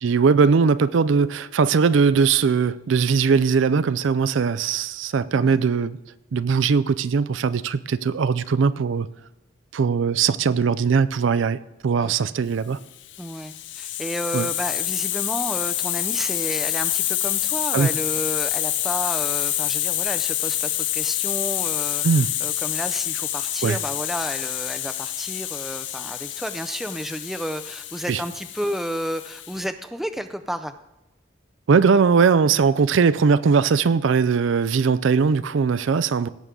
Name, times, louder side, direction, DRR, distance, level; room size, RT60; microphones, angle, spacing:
voice 1, 0.0-6.0 6.3-9.1 9.7-11.6 11.8-12.8 14.3-14.5 17.7-17.9 22.0-22.3 23.6-23.8 28.1-28.2 31.7-36.3, right 5 dB, 75° right, 0.4 m, -20 dB
Hiss, 13.0-29.7, left 13 dB, 65° left, 0.6 m, -27 dB
voice 2, 13.2-30.7, equal, ahead, 0.4 m, -31 dB
17.0 x 6.9 x 3.7 m
head